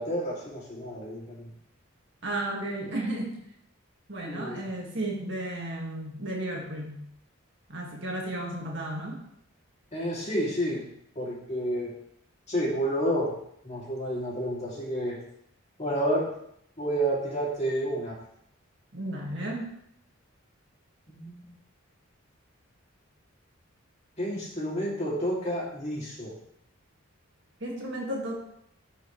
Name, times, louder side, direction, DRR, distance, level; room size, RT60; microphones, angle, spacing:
voice 1, 0.0-1.5 4.3-4.6 9.9-10.9 11.2-11.9 12.5-13.3 13.6-15.2 15.8-16.3 16.8-18.2 21.1-21.4 24.2-26.3, equal, 30° left, -4 dB, 2.4 m, -30 dB
voice 2, 2.2-3.4 4.1-7.0 7.7-9.2 18.9-19.7 27.6-28.4, right 1 dB, 55° right, -1 dB, 1.9 m, -33 dB
14.0 x 5.1 x 3.2 m, 0.73 s
head